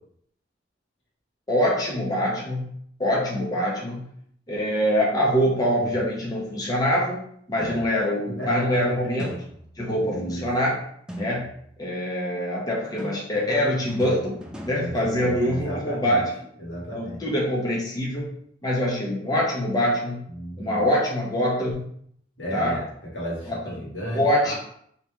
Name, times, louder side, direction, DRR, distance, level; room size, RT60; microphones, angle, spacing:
voice 1, 1.5-2.7 3.0-4.1 4.5-7.2 7.5-9.3 9.8-10.8 11.2-11.5 11.8-14.3 14.6-16.5 16.9-18.2 18.6-20.2 20.6-21.8 22.5-22.8 23.4-23.6 24.1-24.6, equal, 20° left, -4 dB, 0.7 m, -24 dB
sound 1, 5.8-6.5 9.2-10.0 11.1-11.8 12.8-15.8, equal, 5° right, 0.4 m, -40 dB
voice 2, 10.1-10.5 14.7-16.2 16.6-17.2 20.3-20.9 22.4-22.9 23.1-24.6, equal, 80° left, -5 dB, 1.4 m, -33 dB
3.2 x 2.9 x 3.4 m, 0.68 s
head